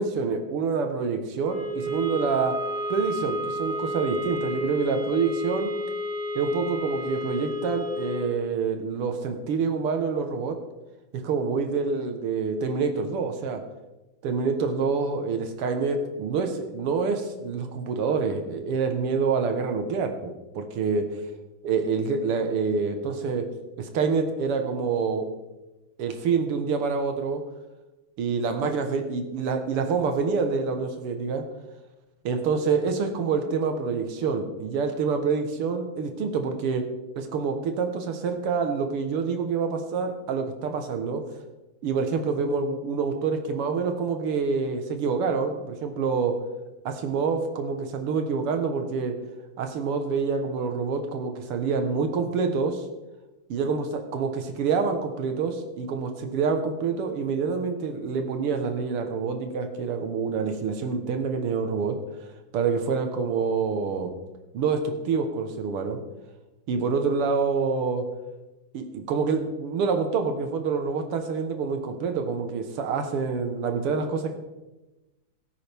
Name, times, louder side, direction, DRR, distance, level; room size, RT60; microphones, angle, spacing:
voice 1, 0.0-2.6 2.9-5.7 6.4-10.6 11.1-13.6 14.2-21.1 21.6-23.5 23.8-25.3 26.0-27.4 28.2-31.4 32.2-36.8 37.2-41.2 41.8-46.4 46.9-49.1 49.6-52.8 53.5-62.0 62.5-64.1 64.5-66.0 66.7-68.0 68.7-74.4, right 5 dB, 90° right, 6 dB, 2.2 m, -27 dB
sound 1, 1.4-8.4, left 1 dB, 35° right, 0.6 m, -31 dB
17.5 x 9.0 x 3.5 m, 1.1 s
omnidirectional pair, 2.4 m